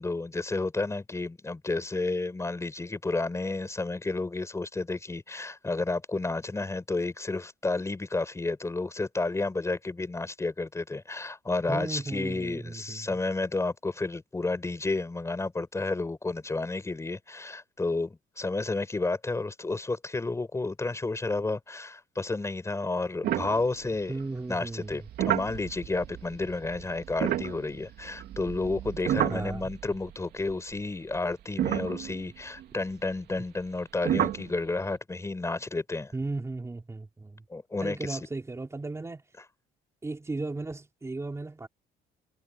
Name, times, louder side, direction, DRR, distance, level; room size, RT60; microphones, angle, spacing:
voice 1, 0.0-24.2 24.5-36.1 37.5-38.2, left 3 dB, 15° left, 5.1 m, -31 dB
voice 2, 11.7-13.2 24.1-25.0 29.3-29.7 33.3-33.4 36.1-37.4 37.8-39.2 40.0-41.7, right 3 dB, 15° right, 3.9 m, -35 dB
sound 1, 23.2-24.2 24.9-30.1 30.4-30.5 31.1-31.2 31.6-32.6 34.0-34.5, right 12 dB, 70° right, 2.7 m, -31 dB
cardioid pair, 110°, 17 cm